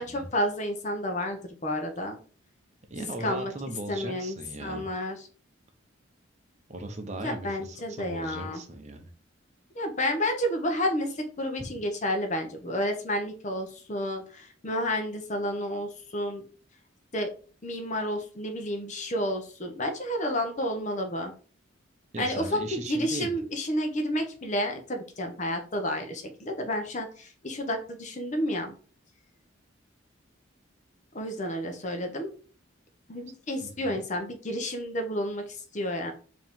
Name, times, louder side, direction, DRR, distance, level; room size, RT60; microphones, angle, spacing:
voice 1, 0.0-2.2 3.2-3.5 3.9-5.2 7.2-8.6 9.7-16.4 17.1-17.3 17.6-21.3 22.2-28.7 31.1-32.3 33.1-36.1, equal, 35° left, 5 dB, 0.8 m, -30 dB
voice 2, 2.9-4.9 6.7-9.1 11.6-11.7 22.1-23.3 33.6-34.0, right 2 dB, 35° right, 5 dB, 0.7 m, -38 dB
4.7 x 2.9 x 3.6 m, 0.40 s
head